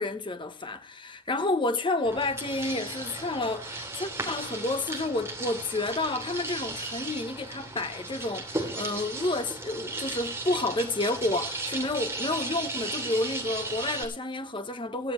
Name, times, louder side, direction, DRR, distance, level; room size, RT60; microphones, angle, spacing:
voice 1, 0.0-15.1, left 2 dB, 25° left, 1.0 m, -30 dB
sound 1, 2.0-14.0, right 2 dB, 10° right, 2.9 m, -36 dB
18.5 x 14.0 x 3.1 m
head